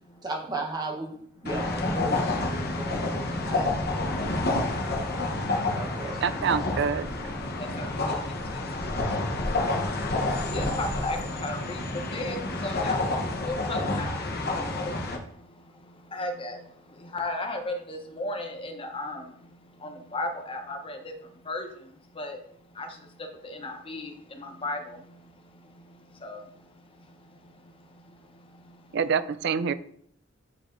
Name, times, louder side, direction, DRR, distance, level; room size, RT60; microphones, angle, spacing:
voice 1, 0.2-3.7 4.2-4.5 5.7-6.5 7.7-7.9 9.2-9.4, right 2 dB, 20° right, 0 dB, 1.0 m, -36 dB
sound 1, 1.4-15.2, left 2 dB, 50° left, 1.0 m, -29 dB
voice 2, 6.2-7.1 28.9-29.7, right 6 dB, 60° right, 14 dB, 0.4 m, -26 dB
voice 3, 7.6-22.4 22.7-29.0, left 2 dB, 25° left, 4 dB, 0.9 m, -37 dB
8.7 x 4.8 x 2.6 m, 0.66 s
head